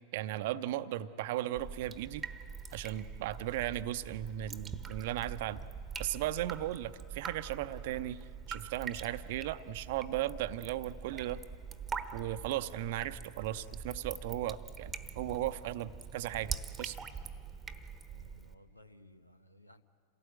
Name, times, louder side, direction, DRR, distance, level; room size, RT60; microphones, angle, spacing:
voice 1, 0.1-2.2 2.7-5.7 6.0-11.4 12.1-17.0, right 13 dB, 50° right, 13 dB, 0.7 m, -36 dB
Drip, 1.6-18.5, right 6 dB, 15° right, 1.1 m, -44 dB
voice 2, 12.6-13.0 18.1-19.8, left 1 dB, 85° left, 10 dB, 1.0 m, -58 dB
27.5 x 17.5 x 8.9 m, 2.6 s
figure-of-eight pair, 90°, 0 cm